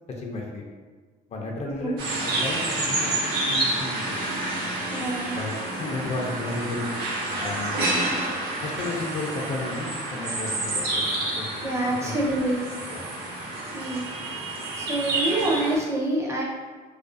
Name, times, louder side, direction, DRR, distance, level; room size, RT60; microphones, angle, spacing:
voice 1, 0.2-0.6 1.3-1.9 2.2-3.1 3.5-4.3 5.3-6.9 7.4-7.8 8.6-11.5 12.0-12.4 12.9-13.1, left 2 dB, 40° left, 0 dB, 0.4 m, -33 dB
sound 1, 2.0-15.8, right 2 dB, 70° right, 0.7 m, -29 dB
voice 2, 4.9-5.4 11.6-12.6 13.7-14.1 14.8-16.4, right 1 dB, 15° right, -3 dB, 0.5 m, -26 dB
2.4 x 2.2 x 2.5 m, 1.4 s
cardioid pair, 110°, 17 cm